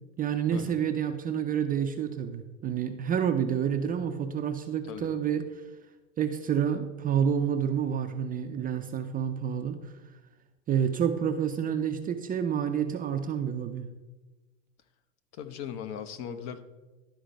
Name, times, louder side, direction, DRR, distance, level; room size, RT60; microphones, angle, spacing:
voice 1, 0.2-5.4 6.2-9.9 10.7-13.9, right 8 dB, 20° right, 6 dB, 0.5 m, -29 dB
voice 2, 15.3-16.6, left 8 dB, 40° left, 10 dB, 0.8 m, -38 dB
12.0 x 4.4 x 5.1 m, 1.2 s
hypercardioid pair, 100°, 41 cm